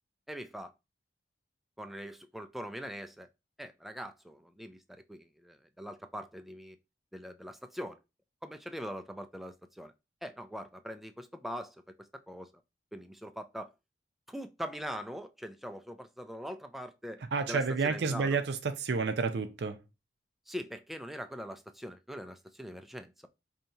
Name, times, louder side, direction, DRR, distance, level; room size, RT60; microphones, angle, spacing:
voice 1, 0.3-0.7 1.8-3.3 3.6-6.8 7.1-8.0 8.4-9.9 10.2-11.8 12.3-12.5 12.9-13.7 14.3-17.2 17.5-18.4 20.5-23.1, equal, ahead, 0.3 m, -42 dB
voice 2, 17.3-19.8, right 4 dB, 65° right, 0.4 m, -30 dB
4.4 x 2.7 x 2.6 m
head